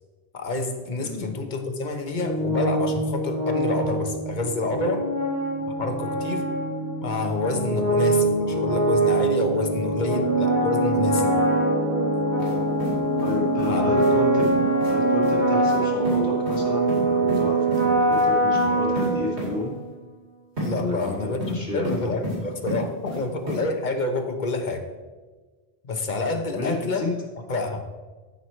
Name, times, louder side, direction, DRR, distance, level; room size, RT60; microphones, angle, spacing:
voice 1, 0.3-5.1 5.8-6.5 7.0-11.3 13.7-13.9 14.4-14.7 20.6-24.9 25.8-27.1 27.5-27.9, left 2 dB, 45° left, 5 dB, 1.0 m, -28 dB
voice 2, 1.0-1.3 13.2-14.5 14.9-19.7 20.7-22.1 26.5-27.2, left 3 dB, 85° left, -3 dB, 2.4 m, -31 dB
sound 1, 2.1-19.7, right 2 dB, 45° right, 1.9 m, -23 dB
sound 2, 12.4-12.5 12.8-13.7 14.0-14.1 14.4-14.5 14.8-14.9 15.2-15.3 15.6-15.8 16.0-16.2 16.5-16.6 16.9-17.4 17.7-17.8 18.1-18.2 18.5-18.7 19.0-19.1 19.4-19.5 20.6-20.7 21.0-21.6 21.8-22.4 22.7-23.2 23.5-23.6, equal, 80° right, 3.0 m, -32 dB
13.5 x 4.7 x 4.4 m, 1.3 s
omnidirectional pair, 1.1 m